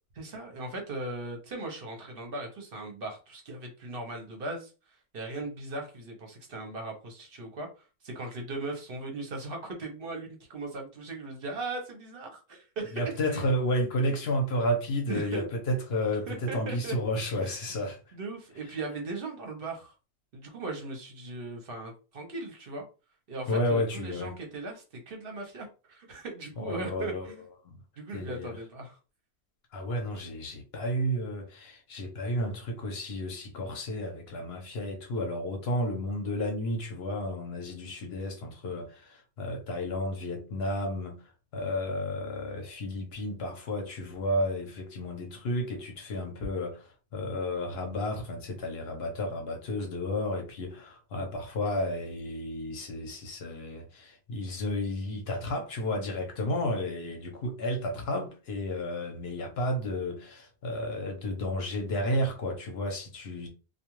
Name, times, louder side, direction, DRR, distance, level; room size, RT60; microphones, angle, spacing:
voice 1, 0.1-13.0 13.3-13.4 15.1-15.5 16.3-17.0 17.3-17.5 18.1-19.9 20.3-22.8 23.3-27.4 28.0-29.0, right 2 dB, 60° right, 1.0 m, -38 dB
voice 2, 12.9-18.0 23.5-24.3 26.6-27.3 27.6-27.8 28.1-28.6 29.7-41.2 41.5-63.5, left 1 dB, 65° left, 1.0 m, -32 dB
2.3 x 2.3 x 3.0 m
omnidirectional pair, 1.1 m